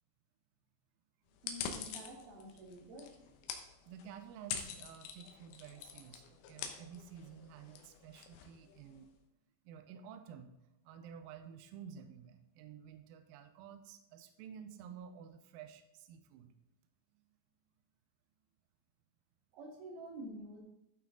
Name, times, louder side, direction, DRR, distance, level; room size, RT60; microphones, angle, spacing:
sound 1, 1.3-9.1, left 7 dB, 80° left, 3.1 m, -46 dB
voice 1, 1.4-3.2 19.5-20.6, right 1 dB, 65° right, -1 dB, 3.6 m, -49 dB
voice 2, 3.9-9.1 9.7-10.5 10.8-16.5, right 8 dB, 85° right, 8 dB, 2.0 m, -52 dB
13.5 x 5.9 x 3.8 m, 0.89 s
omnidirectional pair, 5.1 m